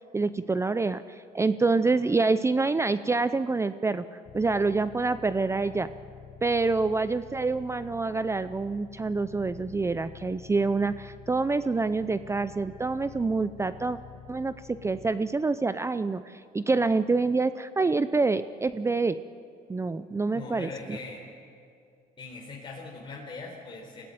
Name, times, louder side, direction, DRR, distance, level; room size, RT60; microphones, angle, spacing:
voice 1, 0.1-4.1 4.3-5.9 6.4-14.0 14.3-19.2 19.7-21.0, right 3 dB, 15° right, 12 dB, 0.5 m, -26 dB
sound 1, 4.2-15.1, left 8 dB, 45° left, 1.2 m, -49 dB
voice 2, 20.3-21.2 22.2-24.1, left 3 dB, 30° left, -3 dB, 4.2 m, -41 dB
22.5 x 16.5 x 9.3 m, 2.4 s
cardioid pair, 110°, 17 cm